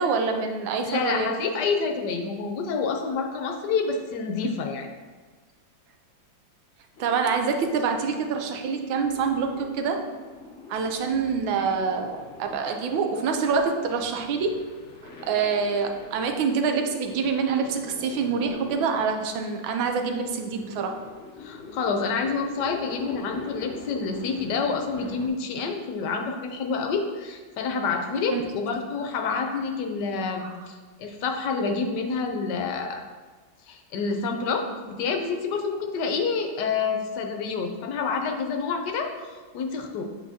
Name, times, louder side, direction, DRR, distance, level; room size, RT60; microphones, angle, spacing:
voice 1, 0.0-1.3 7.0-10.0 10.7-14.6 15.3-21.0 28.3-28.5 30.4-30.6, right 5 dB, 85° right, 4 dB, 1.4 m, -26 dB
voice 2, 0.8-4.9 21.4-33.0 33.7-40.0, left 4 dB, 70° left, 4 dB, 1.2 m, -28 dB
sound 1, 7.0-25.3, left 3 dB, 90° left, 0.6 m, -44 dB
8.2 x 4.3 x 2.8 m, 1.4 s
omnidirectional pair, 2.1 m